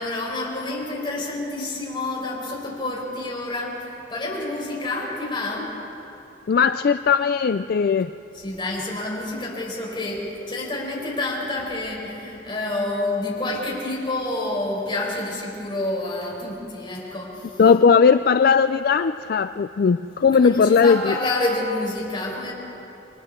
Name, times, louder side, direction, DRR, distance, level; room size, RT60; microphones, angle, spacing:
voice 1, 0.0-5.8 8.3-17.6 20.3-22.5, left 2 dB, 25° left, -4 dB, 5.4 m, -28 dB
voice 2, 6.5-8.1 17.6-21.2, left 6 dB, 55° left, 11 dB, 0.4 m, -18 dB
29.0 x 22.5 x 4.4 m, 2.9 s
head